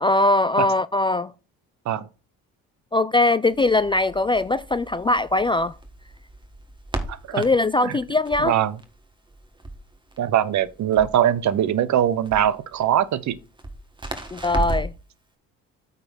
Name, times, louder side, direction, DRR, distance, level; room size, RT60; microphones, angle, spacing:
voice 1, 0.0-1.3 2.9-5.7 7.3-8.6 14.3-14.9, left 2 dB, 15° left, 0.3 m, -21 dB
Crackle, 3.5-15.0, right 2 dB, 15° right, 1.7 m, -35 dB
voice 2, 7.1-7.4 7.8-8.0 8.4-8.8 10.2-13.4, right 10 dB, 55° right, 0.8 m, -22 dB
8.7 x 4.2 x 6.2 m
supercardioid pair, 85°, 34 cm